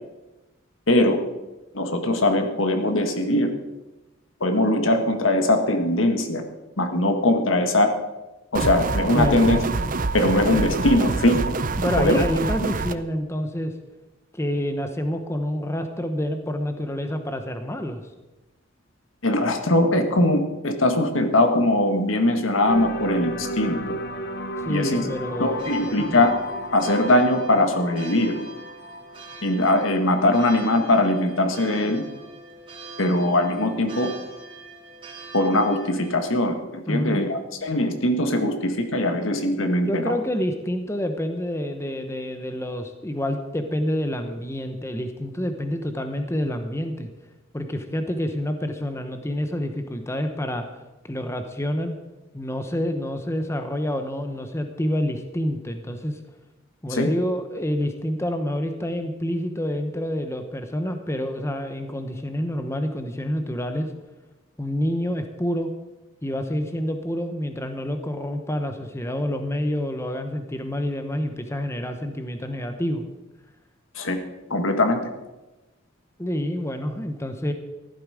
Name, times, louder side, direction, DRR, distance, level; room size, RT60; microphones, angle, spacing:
voice 1, 0.9-1.2 1.7-3.5 4.4-6.4 6.8-7.9 8.5-9.6 10.1-11.4 12.0-12.2 19.2-23.8 24.7-25.0 25.4-26.4 26.7-28.4 29.4-32.0 33.0-34.1 35.3-40.2 56.9-57.1 74.0-74.2 74.5-75.0, left 1 dB, 80° left, 6 dB, 1.7 m, -21 dB
sound 1, 8.5-12.9, right 3 dB, 40° right, 0.6 m, -26 dB
voice 2, 9.1-9.7 11.8-13.7 14.3-18.0 24.6-26.2 36.9-37.4 39.9-47.1 47.5-50.7 51.1-52.0 52.3-56.2 56.8-63.9 64.6-65.7 66.2-73.0 76.2-77.5, equal, 15° left, 7 dB, 1.0 m, -28 dB
sound 2, 22.7-30.1, equal, 55° left, 1.0 m, -34 dB
sound 3, 25.5-36.2, right 3 dB, 25° right, 3.1 m, -43 dB
14.5 x 12.0 x 5.0 m, 1.1 s
head